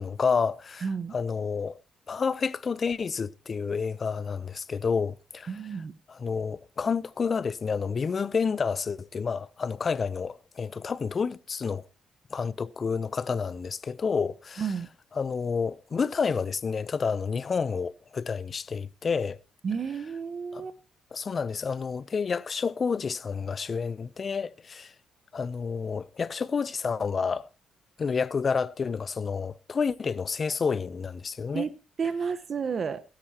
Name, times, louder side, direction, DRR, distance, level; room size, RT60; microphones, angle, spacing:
voice 1, 0.0-0.9 1.1-1.8 2.1-5.5 6.1-11.8 12.3-14.6 15.2-19.4 20.5-20.6 21.1-24.9 25.3-27.5 28.0-31.6, left 5 dB, 40° left, 0.6 m, -29 dB
voice 2, 0.8-1.2 5.5-5.9 14.6-14.9 19.6-20.8 31.5-33.0, right 6 dB, 50° right, 1.1 m, -31 dB
17.0 x 10.0 x 2.9 m
cardioid pair, 90°, 0 cm